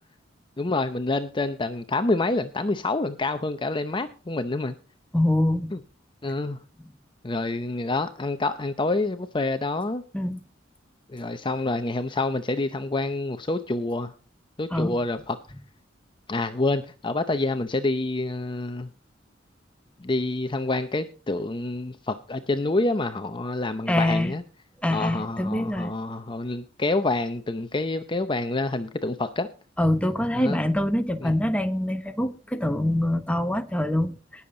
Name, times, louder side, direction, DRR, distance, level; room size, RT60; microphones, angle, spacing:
voice 1, 0.6-4.7 5.7-5.8 6.2-6.6 7.2-10.0 11.1-14.1 14.6-15.4 16.3-18.9 20.0-24.4 24.9-29.5 30.3-30.6 31.2-31.3, left 2 dB, 25° left, 0.7 m, -27 dB
voice 2, 5.1-5.7 10.1-10.4 14.7-15.0 23.9-24.3 24.8-25.9 29.8-34.2, left 1 dB, 5° left, 1.0 m, -24 dB
19.0 x 7.1 x 3.9 m
head